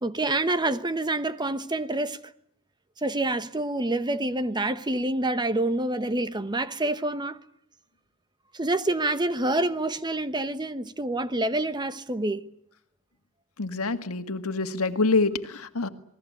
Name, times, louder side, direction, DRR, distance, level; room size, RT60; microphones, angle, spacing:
voice 1, 0.0-2.2 3.0-7.4 8.5-12.5, right 2 dB, 20° right, 1.0 m, -27 dB
voice 2, 13.6-15.9, left 3 dB, 75° left, 1.9 m, -26 dB
27.5 x 20.5 x 8.6 m
head